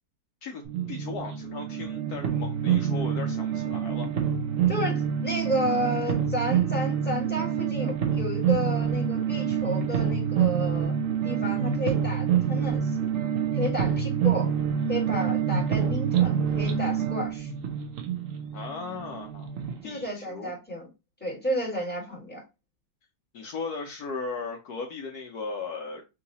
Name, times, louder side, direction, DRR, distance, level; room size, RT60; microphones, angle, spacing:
sound 1, 0.6-19.8, right 8 dB, 60° right, 1.0 m, -27 dB
voice 1, 0.9-4.1 18.5-19.5 19.8-20.5 23.3-26.0, left 4 dB, 70° left, 2 dB, 1.2 m, -37 dB
voice 2, 4.7-10.9 11.2-12.9 13.5-14.5 14.9-17.5 19.8-20.9 21.2-22.4, equal, 5° left, -2 dB, 1.7 m, -31 dB
3.9 x 2.8 x 4.0 m, 0.26 s
omnidirectional pair, 1.9 m